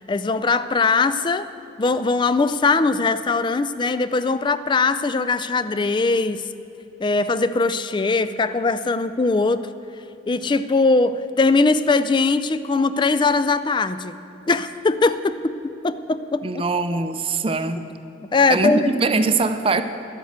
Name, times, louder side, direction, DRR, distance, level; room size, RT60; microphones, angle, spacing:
voice 1, 0.0-1.5 1.8-6.4 7.0-9.7 10.3-14.2 14.5-16.6 18.3-18.9, left 3 dB, 25° left, 13 dB, 0.4 m, -20 dB
voice 2, 16.4-17.8 18.5-19.8, right 3 dB, 30° right, 10 dB, 0.5 m, -22 dB
11.0 x 8.2 x 7.9 m, 2.9 s
head